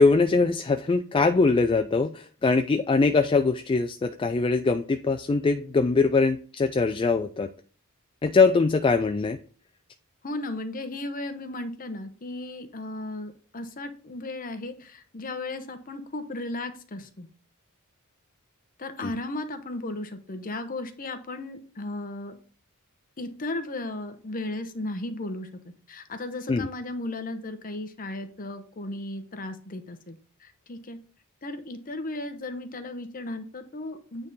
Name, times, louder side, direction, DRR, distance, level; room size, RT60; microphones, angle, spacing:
voice 1, 0.0-7.5 8.2-9.4 19.0-19.1 26.5-26.7, left 4 dB, 25° left, 9 dB, 0.3 m, -22 dB
voice 2, 10.2-17.3 18.8-22.4 23.2-25.5 25.9-31.0 31.4-34.3, left 2 dB, 40° left, 9 dB, 0.8 m, -35 dB
8.9 x 3.6 x 4.0 m, 0.40 s
head